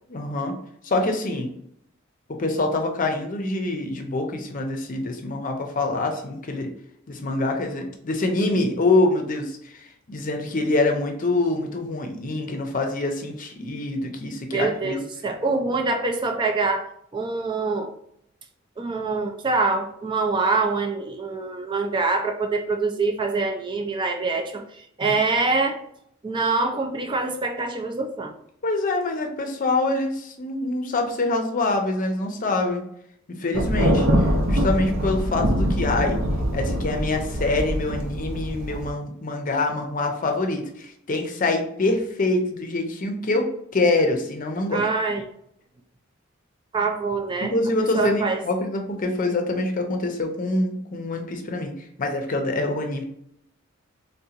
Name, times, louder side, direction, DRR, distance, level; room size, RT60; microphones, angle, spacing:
voice 1, 0.1-0.5 0.8-1.5 2.3-6.7 7.1-15.0 25.0-25.1 28.6-32.8 33.4-36.2 36.5-44.8 47.4-53.0, left 2 dB, 45° left, 4 dB, 0.6 m, -25 dB
voice 2, 14.5-15.0 15.2-17.9 18.8-25.8 26.2-28.3 44.7-45.2 46.7-47.5 47.9-48.4, right 3 dB, 25° right, 4 dB, 0.4 m, -25 dB
Thunder, 33.5-38.9, equal, 80° right, 0.6 m, -23 dB
3.5 x 2.8 x 2.4 m, 0.72 s
head